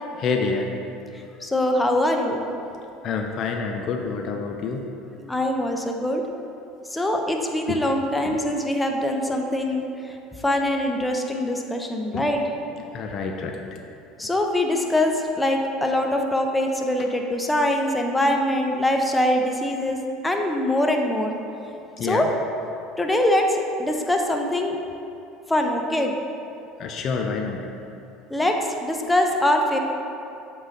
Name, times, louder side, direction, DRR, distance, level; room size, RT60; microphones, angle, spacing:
voice 1, 0.1-0.7 3.0-4.9 5.2-5.3 7.7-7.8 8.2-8.4 12.1-12.3 12.8-13.9 21.7-22.3 26.8-27.7, left 4 dB, 50° left, 3 dB, 0.5 m, -28 dB
voice 2, 1.4-2.4 5.3-6.2 6.9-10.2 10.4-12.4 14.2-20.0 20.2-21.3 22.0-22.3 23.0-24.8 25.5-26.1 28.3-29.8, left 1 dB, 10° left, 3 dB, 0.7 m, -23 dB
7.9 x 4.0 x 3.8 m, 2.8 s
hypercardioid pair, 75°, 0 cm